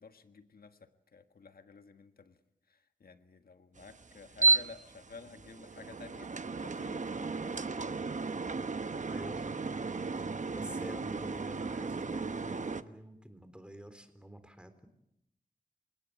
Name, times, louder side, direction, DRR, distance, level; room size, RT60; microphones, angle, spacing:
voice 1, 0.0-2.4 2.7-8.4, left 4 dB, 85° left, 8 dB, 1.5 m, -53 dB
sound 1, 3.8-12.8, right 3 dB, 55° right, 1.0 m, -34 dB
voice 2, 9.0-14.9, equal, 5° right, 10 dB, 3.8 m, -49 dB
28.5 x 18.0 x 8.7 m, 0.83 s
wide cardioid pair, 65°, 15 cm